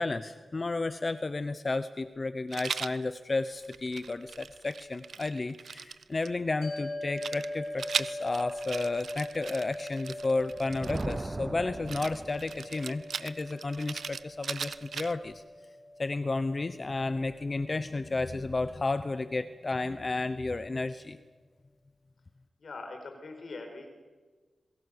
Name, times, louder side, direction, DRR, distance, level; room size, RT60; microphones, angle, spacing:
voice 1, 0.0-15.4 16.0-21.2, left 3 dB, 40° left, 12 dB, 0.9 m, -32 dB
Rattle, 2.5-3.0 3.6-6.3 7.2-11.3 11.9-15.3, right 6 dB, 85° right, 0.7 m, -39 dB
sound 1, 6.6-19.1, left 1 dB, 85° left, 7.3 m, -42 dB
Thunder, 10.5-12.8, right 2 dB, 30° right, 0.7 m, -38 dB
voice 2, 22.6-23.9, left 3 dB, 70° left, 5 dB, 4.9 m, -42 dB
27.5 x 22.5 x 6.8 m, 1.4 s
wide cardioid pair, 95°, 0 cm